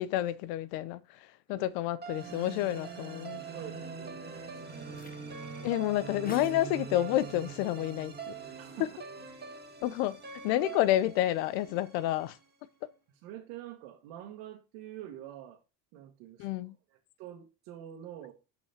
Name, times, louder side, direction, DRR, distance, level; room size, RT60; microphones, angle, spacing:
voice 1, 0.0-3.4 5.6-8.3 9.8-12.4 16.4-16.8, left 14 dB, 80° left, 0.9 m, -30 dB
sound 1, 2.0-12.3, right 6 dB, 20° right, 1.9 m, -43 dB
voice 2, 3.5-4.3 4.5-4.8 8.6-9.0 13.2-15.6 15.9-18.3, right 11 dB, 80° right, 1.6 m, -46 dB
sound 2, 4.0-11.8, left 3 dB, 20° left, 1.3 m, -56 dB
6.2 x 5.5 x 5.8 m
supercardioid pair, 105°, 48 cm